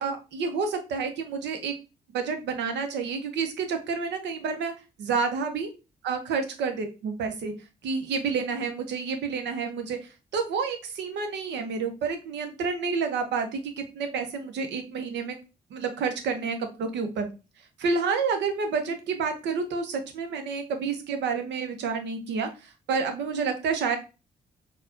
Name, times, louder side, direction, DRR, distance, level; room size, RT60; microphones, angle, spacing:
voice 1, 0.0-1.7 2.1-4.7 5.0-5.7 6.0-7.5 7.8-10.0 10.3-15.4 15.7-17.3 17.8-22.5 22.9-24.0, right 5 dB, 70° right, 6 dB, 0.7 m, -29 dB
4.1 x 2.3 x 2.6 m, 0.30 s
hypercardioid pair, 40°, 19 cm